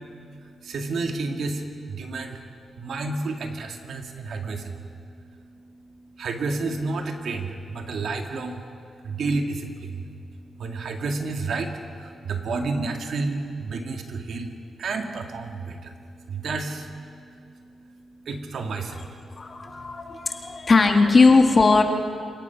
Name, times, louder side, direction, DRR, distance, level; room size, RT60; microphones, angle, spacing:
voice 1, 0.6-2.4 2.8-4.9 5.3-5.4 6.2-8.6 9.0-14.5 14.8-20.6, right 3 dB, 70° right, 4 dB, 1.9 m, -31 dB
voice 2, 19.4-21.8, left 3 dB, 35° left, 4 dB, 1.8 m, -18 dB
28.0 x 17.5 x 5.8 m, 2.4 s
cardioid pair, 105°, 0 cm